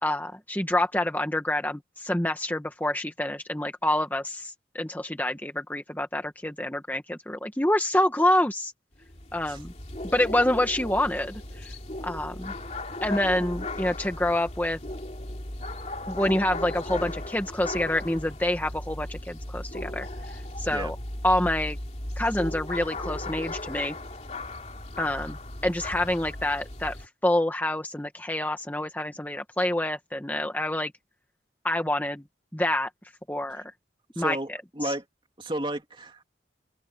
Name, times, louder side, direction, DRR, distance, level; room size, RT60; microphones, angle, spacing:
voice 1, 0.0-8.7 9.3-9.7 10.1-11.7 12.0-12.5 13.0-14.8 16.1-20.1 20.3-20.9 21.2-21.8 22.2-23.9 25.0-25.4 25.6-30.9 31.6-32.2 32.5-32.9 33.3-33.7 34.2-34.4 34.8-34.9, left 1 dB, 10° left, 1.4 m, -27 dB
sound 1, 8.9-27.1, left 1 dB, 40° left, 3.0 m, -36 dB
voice 2, 34.1-35.0 35.4-36.2, right 1 dB, 30° right, 2.9 m, -33 dB
open air
head